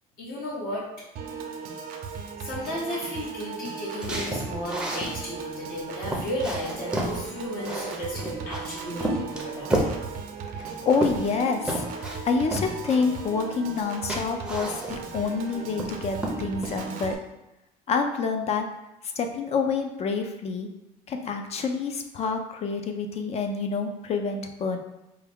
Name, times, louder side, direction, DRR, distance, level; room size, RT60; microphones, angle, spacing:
voice 1, 0.2-0.9 2.4-9.9, left 1 dB, 65° left, -6 dB, 1.3 m, -34 dB
Piano / Organ, 1.2-17.2, right 5 dB, 65° right, 0.6 m, -37 dB
sound 1, 4.0-5.1 5.7-5.8 6.1-7.2 7.6-8.6 9.0-10.0 10.6-11.4 11.7-12.2 12.5-12.7 13.7-13.8 14.1-15.1 15.5-15.9 16.2-16.8, right 1 dB, 5° right, 0.6 m, -30 dB
voice 2, 10.5-11.8 12.2-17.2 17.9-18.7 19.2-20.7 21.1-24.8, left 5 dB, 40° left, 5 dB, 0.5 m, -27 dB
4.6 x 2.2 x 3.5 m, 0.90 s
cardioid pair, 140°, 16 cm